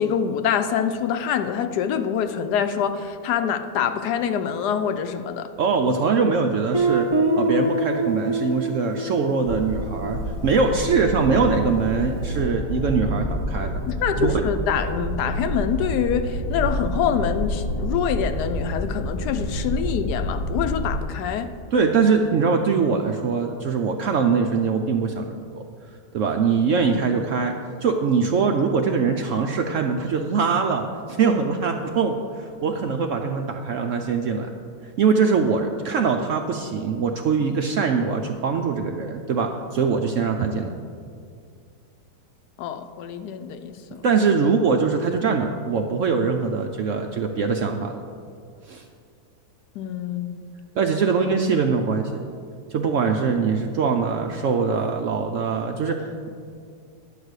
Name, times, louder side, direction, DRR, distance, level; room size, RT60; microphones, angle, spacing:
voice 1, 0.0-5.5 13.9-21.5 42.6-44.0 49.8-50.6, left 8 dB, 75° left, 9 dB, 1.1 m, -25 dB
voice 2, 5.6-7.1 7.3-13.7 14.2-14.4 21.7-25.6 26.1-27.5 27.8-34.5 35.0-40.7 44.0-48.0 48.7-48.8 50.8-52.2 52.7-56.3, right 5 dB, 65° right, 4 dB, 0.8 m, -22 dB
Guitar, 6.7-11.4, right 2 dB, 30° right, 0.4 m, -26 dB
sound 1, 9.5-21.0, left 1 dB, 40° left, 0.9 m, -28 dB
10.5 x 4.9 x 8.1 m, 2.3 s
omnidirectional pair, 1.8 m